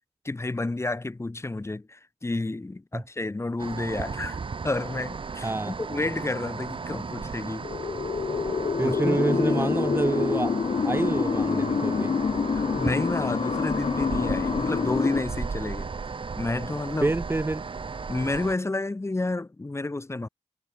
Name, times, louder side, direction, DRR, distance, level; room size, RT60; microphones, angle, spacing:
voice 1, 0.2-4.4 4.6-7.7 8.8-9.7 12.5-15.9 16.4-17.1 18.1-20.3, left 2 dB, 20° left, 6.3 m, -30 dB
sound 1, 3.6-18.5, right 5 dB, 45° right, 2.3 m, -35 dB
sound 2, 7.6-15.2, left 5 dB, 55° left, 2.0 m, -27 dB
voice 2, 8.8-10.6 10.8-12.1 17.0-17.6, right 2 dB, 20° right, 1.2 m, -27 dB
wide cardioid pair, 120°, 12 cm